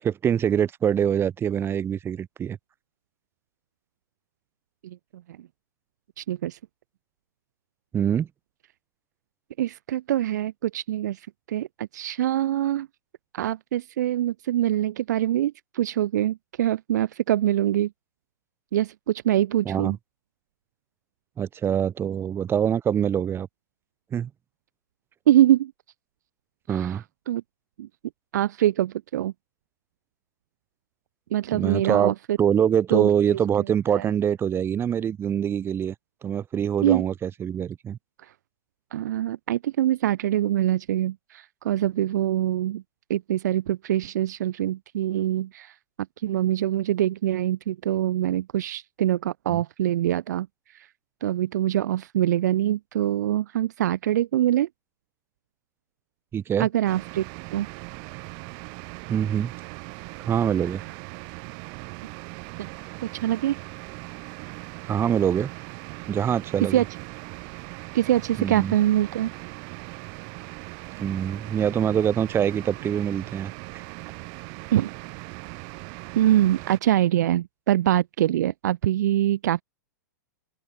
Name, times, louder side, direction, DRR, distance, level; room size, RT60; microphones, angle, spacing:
voice 1, 0.0-2.6 7.9-8.3 19.6-20.0 21.4-23.5 24.1-24.3 26.7-27.0 31.5-32.1 32.4-35.9 36.2-38.0 49.5-49.6 56.3-56.7 59.1-59.5 60.2-60.8 64.9-65.5 66.1-66.8 68.4-68.7 71.0-73.8, right 8 dB, 25° right, 6.8 m, -24 dB
voice 2, 6.2-6.6 9.6-12.9 13.3-17.9 18.7-20.0 25.3-25.7 26.7-27.4 27.8-27.9 28.3-29.3 31.3-32.4 32.9-33.4 33.9-34.1 36.8-37.1 38.2-38.3 38.9-42.8 43.1-45.7 46.2-50.5 50.7-50.9 51.2-54.7 56.6-57.2 57.5-57.7 62.6-62.7 63.2-63.6 66.7-66.9 67.9-69.3 74.7-74.9 76.2-79.6, right 12 dB, 65° right, 1.0 m, -24 dB
sound 1, 56.9-76.8, right 40 dB or more, 45° right, 3.8 m, -40 dB
open air
hypercardioid pair, 115°, 10 cm